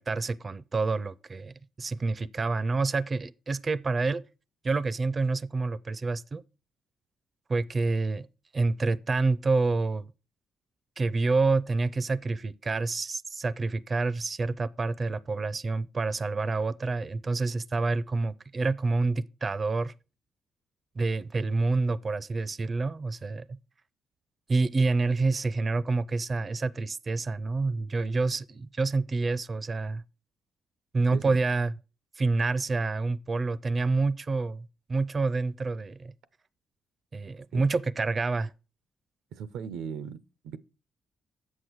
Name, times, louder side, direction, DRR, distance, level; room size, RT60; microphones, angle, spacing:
voice 1, 0.0-4.2 4.6-6.4 7.5-8.3 8.5-10.1 11.0-19.9 21.0-23.6 24.5-30.0 30.9-31.7 32.2-36.1 37.1-38.5, right 3 dB, 35° right, 0.4 m, -28 dB
voice 2, 39.3-40.6, right 7 dB, 85° right, 0.5 m, -38 dB
7.6 x 6.4 x 4.5 m
cardioid pair, 90°, 0 cm